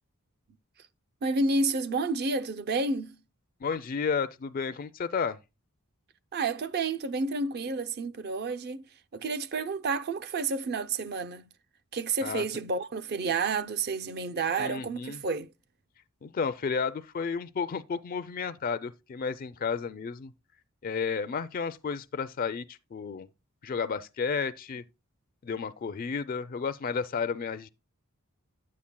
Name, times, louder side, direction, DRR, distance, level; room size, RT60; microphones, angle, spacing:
voice 1, 1.2-3.2 6.3-8.8 9.1-11.5 11.9-15.5, right 3 dB, 45° right, 0.5 m, -30 dB
voice 2, 3.6-5.4 12.2-12.4 14.6-15.2 16.2-20.3 20.8-23.3 23.6-24.8 25.4-27.7, left 5 dB, 40° left, 0.4 m, -32 dB
9.8 x 8.5 x 2.2 m
head